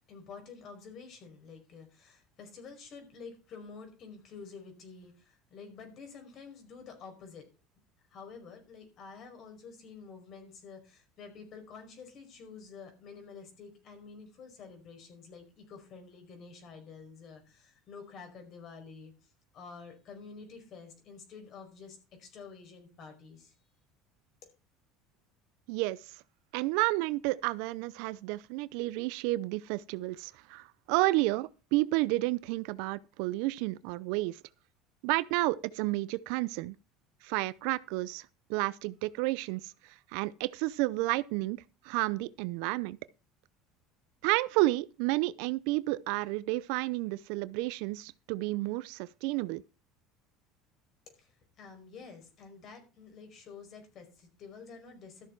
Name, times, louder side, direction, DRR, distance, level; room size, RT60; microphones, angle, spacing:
voice 1, 0.1-7.4 8.1-23.5 51.2-55.3, left 5 dB, 50° left, 5.0 m, -49 dB
voice 2, 25.7-26.1 26.5-34.4 35.0-36.8 37.2-39.7 40.1-43.0 44.2-49.6, right 20 dB, 75° right, 0.5 m, -31 dB
13.0 x 7.4 x 4.6 m
supercardioid pair, 90°, 0 cm